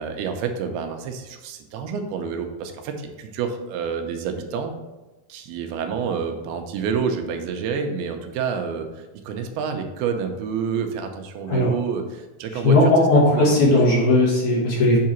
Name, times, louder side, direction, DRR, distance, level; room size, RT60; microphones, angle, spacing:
voice 1, 0.0-4.7 5.3-12.9 13.3-13.6, right 6 dB, 85° right, 5 dB, 2.6 m, -28 dB
voice 2, 12.6-15.0, left 2 dB, 60° left, -4 dB, 2.3 m, -17 dB
7.7 x 3.7 x 4.3 m, 1.1 s
omnidirectional pair, 4.4 m